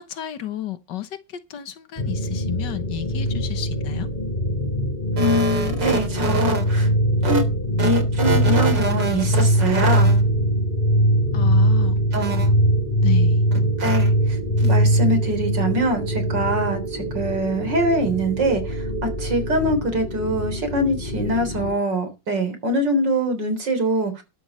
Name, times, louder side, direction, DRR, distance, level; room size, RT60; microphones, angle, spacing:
voice 1, 0.0-4.1 11.3-12.0 13.0-13.4, left 12 dB, 75° left, 1.8 m, -32 dB
sound 1, 2.0-21.7, equal, 20° left, 4.3 m, -22 dB
voice 2, 5.2-6.9 7.2-7.4 7.8-10.3 12.1-12.5 13.8-24.2, right 1 dB, 70° right, 4.3 m, -23 dB
12.5 x 12.5 x 4.2 m
omnidirectional pair, 2.0 m